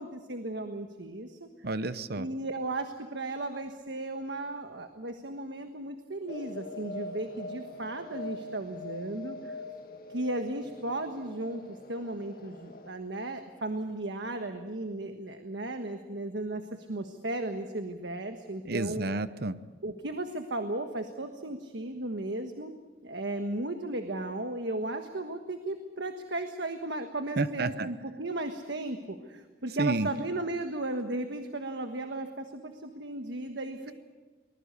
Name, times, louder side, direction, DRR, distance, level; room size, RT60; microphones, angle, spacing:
voice 1, 0.0-1.5 2.1-9.5 10.1-19.1 19.8-22.7 23.0-33.9, right 2 dB, 75° right, 6 dB, 1.4 m, -35 dB
voice 2, 1.6-2.3 18.6-19.5 27.4-27.9 29.8-30.1, right 3 dB, 60° right, 13 dB, 0.9 m, -30 dB
sound 1, 6.3-12.9, left 2 dB, 55° left, 1.9 m, -43 dB
24.0 x 20.5 x 6.8 m, 1.3 s
head